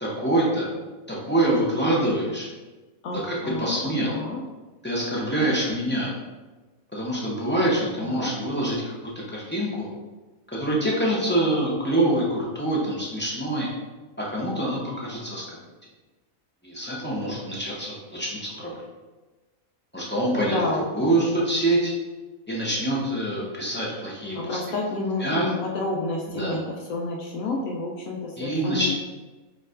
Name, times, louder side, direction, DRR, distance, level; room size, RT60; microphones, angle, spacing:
voice 1, 0.0-0.7 1.1-2.5 3.1-4.1 4.8-6.2 6.9-8.8 9.3-9.9 10.5-13.7 14.2-15.4 16.6-18.8 19.9-21.9 22.5-24.6 25.2-25.5 26.4-26.6 28.4-28.9, right 1 dB, 15° left, -5 dB, 0.4 m, -25 dB
voice 2, 3.0-4.4 8.0-8.3 20.3-20.9 24.3-28.9, left 2 dB, 80° left, -2 dB, 1.0 m, -30 dB
4.3 x 3.0 x 2.5 m, 1.2 s
omnidirectional pair, 1.5 m